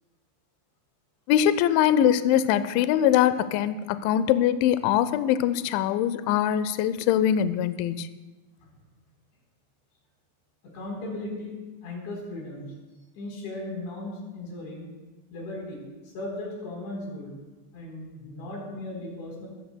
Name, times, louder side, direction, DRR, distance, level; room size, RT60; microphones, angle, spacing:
voice 1, 1.3-8.1, left 10 dB, 85° left, 13 dB, 2.7 m, -22 dB
voice 2, 10.7-11.5 11.8-12.7 13.2-14.9 15.3-15.8 16.1-17.3 17.7-19.5, left 2 dB, 65° left, -2 dB, 6.0 m, -36 dB
24.0 x 16.0 x 2.2 m, 1.2 s
omnidirectional pair, 5.9 m